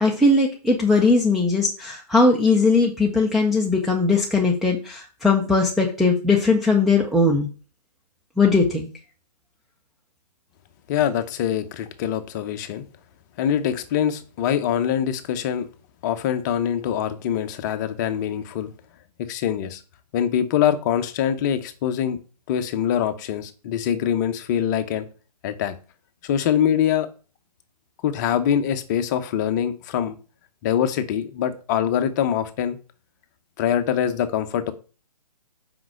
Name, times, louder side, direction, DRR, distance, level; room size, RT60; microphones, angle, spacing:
voice 1, 0.0-7.5 8.4-8.9, left 3 dB, ahead, -1 dB, 0.4 m, -19 dB
voice 2, 10.9-12.8 13.4-15.7 16.0-18.7 19.3-19.8 20.1-22.2 22.5-25.1 25.4-25.7 26.2-27.1 28.0-30.2 30.6-32.8 33.6-34.7, left 9 dB, 25° left, 9 dB, 0.8 m, -24 dB
5.9 x 5.3 x 6.2 m, 0.36 s
hypercardioid pair, 145°, 21 cm